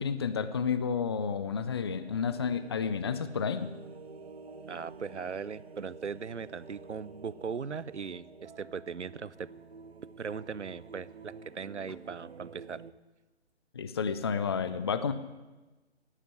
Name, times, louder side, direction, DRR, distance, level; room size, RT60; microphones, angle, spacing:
voice 1, 0.0-3.7 13.7-15.1, left 6 dB, 25° left, 12 dB, 0.5 m, -31 dB
sound 1, 1.9-12.9, right 4 dB, 65° right, 1.3 m, -49 dB
voice 2, 4.7-9.5 10.2-12.8, right 6 dB, 80° right, 20 dB, 0.7 m, -39 dB
15.0 x 10.0 x 9.3 m, 1.2 s
figure-of-eight pair, 145°, 34 cm